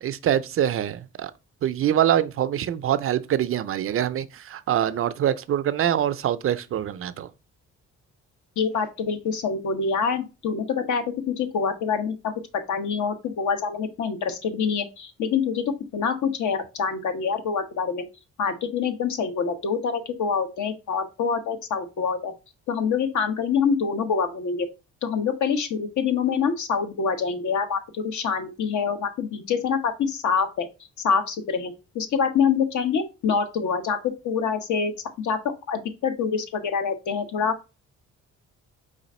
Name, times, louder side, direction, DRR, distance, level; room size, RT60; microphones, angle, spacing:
voice 1, 0.0-1.3 1.6-7.3, right 10 dB, 45° right, 0.4 m, -24 dB
voice 2, 8.6-15.6 15.9-18.0 18.4-22.3 22.7-24.7 25.0-30.7 31.0-35.4 35.7-37.5, left 6 dB, 75° left, 1.0 m, -26 dB
4.8 x 2.5 x 4.1 m
cardioid pair, 90°, 30 cm